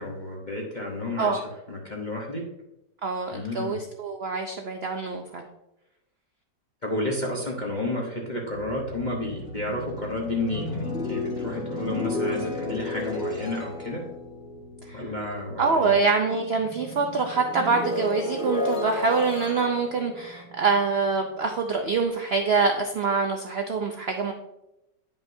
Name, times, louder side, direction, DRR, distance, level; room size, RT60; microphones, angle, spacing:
voice 1, 0.0-1.4 1.7-2.4 3.3-3.8 6.8-14.0 14.9-15.9, left 2 dB, 35° left, -2 dB, 0.9 m, -31 dB
voice 2, 3.0-5.4 14.9-15.0 15.6-24.3, right 4 dB, 85° right, 4 dB, 0.5 m, -25 dB
sound 1, 8.3-15.9 16.2-21.3, left 2 dB, 5° right, 1.1 m, -33 dB
9.5 x 5.5 x 2.6 m, 0.89 s
omnidirectional pair, 1.8 m